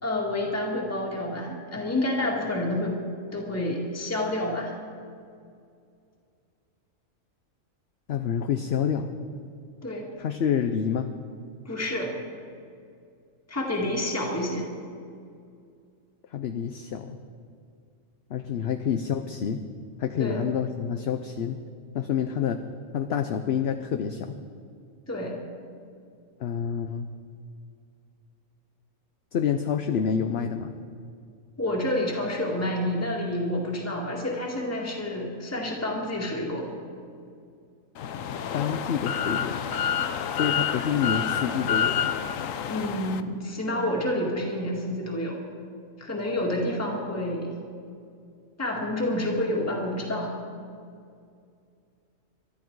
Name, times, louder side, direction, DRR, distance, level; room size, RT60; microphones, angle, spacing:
voice 1, 0.0-3.0 3.3-4.7 9.8-10.1 11.7-12.1 13.5-14.7 20.2-20.4 25.1-25.4 31.6-36.7 42.7-45.4 46.0-47.5 48.6-50.3, left 1 dB, 10° left, -2 dB, 2.0 m, -29 dB
voice 2, 8.1-9.1 10.2-11.1 16.3-17.2 18.3-19.6 20.0-21.6 21.9-22.6 22.9-24.4 26.4-27.1 29.3-30.7 38.5-39.6 40.3-42.1, left 7 dB, 60° left, 7 dB, 0.9 m, -28 dB
sound 1, 38.0-43.2, left 8 dB, 80° left, 1.1 m, -28 dB
23.5 x 12.5 x 4.7 m, 2.4 s
omnidirectional pair, 1.4 m